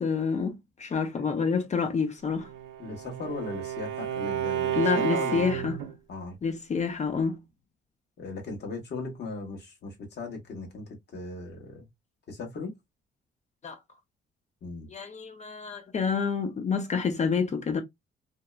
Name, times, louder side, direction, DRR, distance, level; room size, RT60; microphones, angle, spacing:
voice 1, 0.0-2.5 4.8-5.8 6.4-7.4 13.6-13.8 14.9-17.8, left 5 dB, 35° left, 0.5 m, -28 dB
Bowed string instrument, 2.3-5.9, right 10 dB, 80° right, 0.5 m, -31 dB
voice 2, 2.8-5.7 6.1-6.4 8.2-11.9 12.3-12.7 14.6-14.9, left 3 dB, 60° left, 1.2 m, -38 dB
2.7 x 2.1 x 2.3 m
cardioid pair, 90°, 20 cm